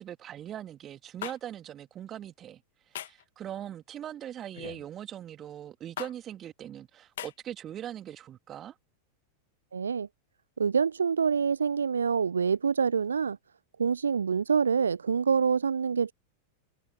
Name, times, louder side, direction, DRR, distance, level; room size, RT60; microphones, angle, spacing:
voice 1, 0.0-2.6 2.9-8.8, right 11 dB, 30° right, 2.5 m, -41 dB
sound 1, 1.2-1.4 2.9-3.2 4.5-4.8 6.0-6.1 7.2-7.3, left 12 dB, 60° left, 2.1 m, -38 dB
voice 2, 9.7-10.1 10.6-13.4 13.8-16.1, right 6 dB, 70° right, 0.3 m, -26 dB
open air
figure-of-eight pair, 90°, 0 cm